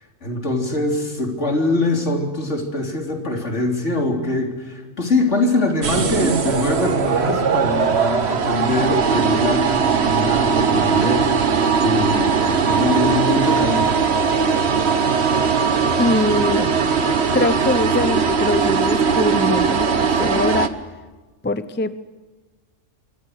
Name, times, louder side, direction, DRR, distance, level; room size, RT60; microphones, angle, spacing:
voice 1, 0.2-11.5 11.8-14.0, left 2 dB, 65° left, 2 dB, 3.9 m, -23 dB
sound 1, 5.8-20.7, right 5 dB, 60° right, 1.4 m, -19 dB
voice 2, 16.0-16.7 17.3-20.8 21.4-22.0, left 2 dB, 10° left, 13 dB, 0.6 m, -22 dB
25.5 x 24.5 x 6.6 m, 1.3 s
omnidirectional pair, 1.3 m